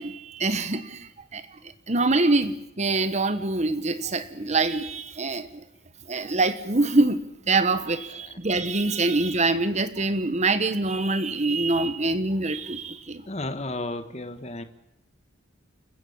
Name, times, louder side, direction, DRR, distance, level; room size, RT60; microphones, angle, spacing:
voice 1, 0.0-1.6 1.9-5.6 6.1-13.2, right 2 dB, 35° right, 12 dB, 1.4 m, -25 dB
voice 2, 13.3-14.6, left 2 dB, 35° left, 9 dB, 1.4 m, -32 dB
28.5 x 15.0 x 8.8 m, 0.84 s
head